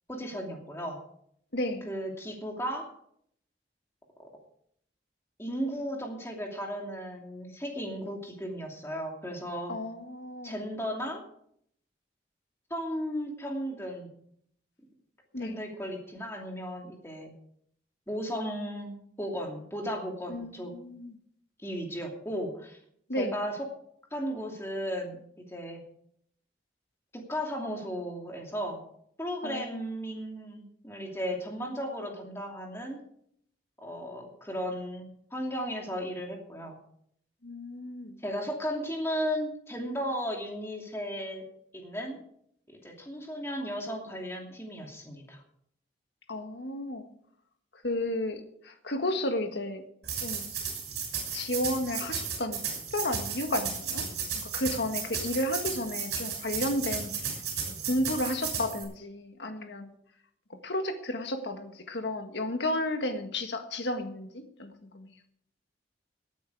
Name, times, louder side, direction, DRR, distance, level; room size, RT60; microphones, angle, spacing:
voice 1, 0.1-1.0 1.8-2.9 4.2-4.3 5.4-9.7 10.4-11.2 12.7-14.1 15.4-17.3 18.1-20.7 21.6-22.8 23.2-23.7 24.1-25.2 25.5-25.8 27.1-28.8 29.2-33.0 33.8-36.8 38.2-41.4 41.7-42.2 42.8-45.4, equal, 15° left, 1 dB, 2.7 m, -35 dB
voice 2, 1.5-1.9 9.7-10.5 15.3-15.6 20.3-21.1 23.1-23.4 29.4-29.8 37.4-38.2 46.3-47.1 47.8-49.8 50.2-50.5 51.3-52.6 52.9-54.0 54.3-57.3 57.7-59.9 60.6-65.1, left 1 dB, 70° left, 6 dB, 1.7 m, -32 dB
sound 1, 50.0-58.8, right 6 dB, 65° right, 6.4 m, -34 dB
18.0 x 9.4 x 4.8 m, 0.68 s
head